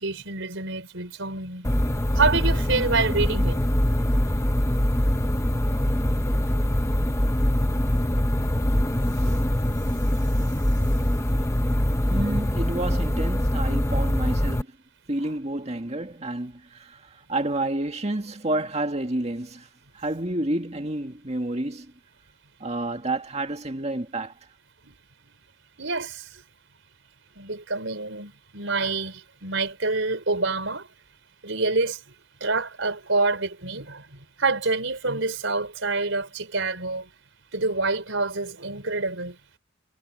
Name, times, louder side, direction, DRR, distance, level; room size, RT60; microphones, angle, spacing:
voice 1, 0.0-1.7 2.1-3.6 9.3-9.4 24.8-24.9 25.8-26.2 27.4-30.8 31.4-32.0 32.4-34.0 34.4-37.0 37.5-39.3, right 3 dB, 70° right, 4.8 m, -27 dB
sound 1, 1.6-14.6, left 1 dB, 15° left, 1.0 m, -23 dB
voice 2, 12.1-14.8 15.1-19.7 19.9-21.9 22.6-24.4, right 2 dB, 35° right, 2.0 m, -30 dB
head